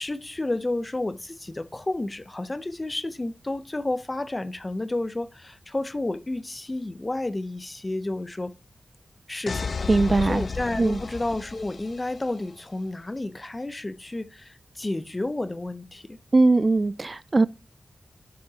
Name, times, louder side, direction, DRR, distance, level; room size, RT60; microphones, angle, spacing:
voice 1, 0.0-8.5 9.3-9.9 10.2-16.2, left 2 dB, 25° left, 0.7 m, -31 dB
sound 1, 9.5-12.3, left 4 dB, 65° left, 0.5 m, -33 dB
voice 2, 9.9-10.4 10.8-11.0 16.3-17.5, right 3 dB, 35° right, 0.3 m, -20 dB
12.5 x 7.3 x 2.9 m
wide cardioid pair, 90°, 0 cm